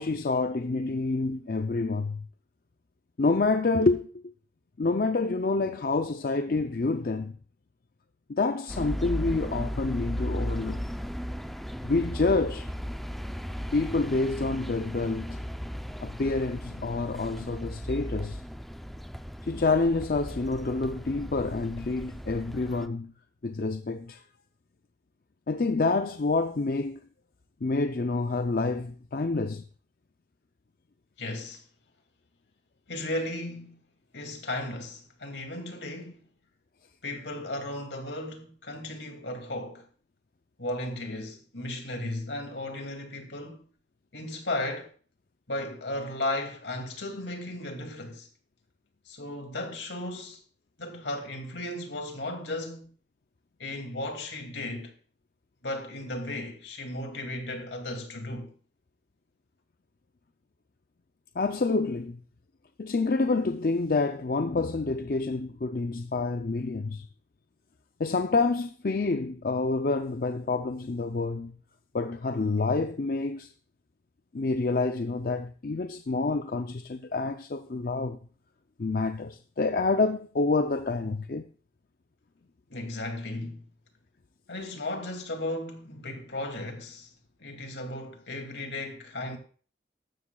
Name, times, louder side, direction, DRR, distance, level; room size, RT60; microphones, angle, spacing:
voice 1, 0.0-2.2 3.2-4.1 4.8-7.3 8.3-10.8 11.8-12.7 13.7-15.4 16.0-18.4 19.4-23.1 23.4-24.2 25.5-27.0 27.6-29.6 61.4-62.2 62.8-67.1 68.0-71.5 71.9-73.5 74.3-78.2 78.8-81.5, left 3 dB, 50° left, 0.5 m, -28 dB
sound 1, 8.7-22.9, equal, ahead, 0.5 m, -36 dB
voice 2, 31.2-31.6 32.9-33.8 34.1-36.3 37.0-39.9 40.6-43.7 44.1-44.9 45.5-48.3 49.1-50.4 50.8-52.9 53.6-54.9 55.6-58.5 82.7-83.7 84.5-87.1 87.4-89.4, left 1 dB, 80° left, 2.5 m, -35 dB
14.5 x 12.5 x 2.3 m
head